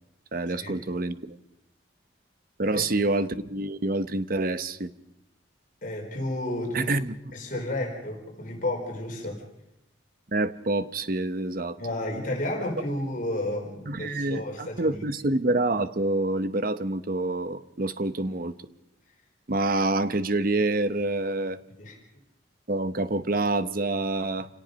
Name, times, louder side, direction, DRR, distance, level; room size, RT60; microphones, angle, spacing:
voice 1, 0.3-1.4 2.6-4.9 6.7-7.1 10.3-11.8 13.9-18.5 19.5-21.6 22.7-24.5, right 2 dB, 50° right, 13 dB, 0.9 m, -27 dB
voice 2, 5.8-7.0 7.3-9.4 11.8-15.0 21.8-22.0, left 1 dB, 45° left, 1 dB, 4.3 m, -32 dB
28.5 x 17.5 x 5.3 m, 0.87 s
head